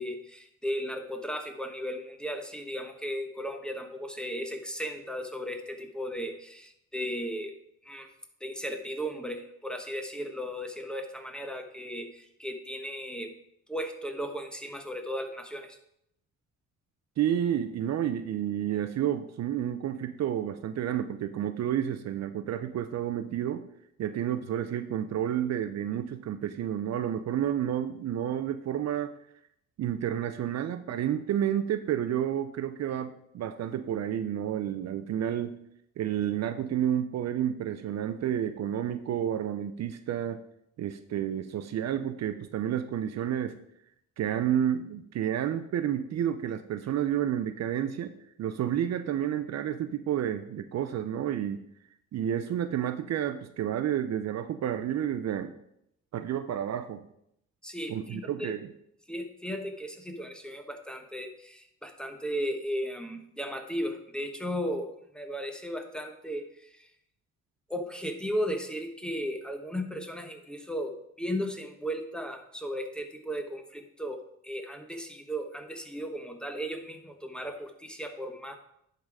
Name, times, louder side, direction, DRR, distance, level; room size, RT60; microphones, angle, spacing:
voice 1, 0.0-7.5 7.8-8.1 8.4-13.3 13.7-15.8 57.6-58.5 59.1-66.9 67.7-78.6, equal, 5° left, 5 dB, 1.0 m, -36 dB
voice 2, 17.2-23.7 24.0-29.1 29.8-35.6 36.0-40.4 40.8-43.6 44.2-48.1 48.4-51.6 52.1-55.5 56.1-57.0 57.9-58.6, right 10 dB, 60° right, 10 dB, 0.6 m, -30 dB
10.5 x 3.9 x 4.7 m, 0.76 s
cardioid pair, 90°, 30 cm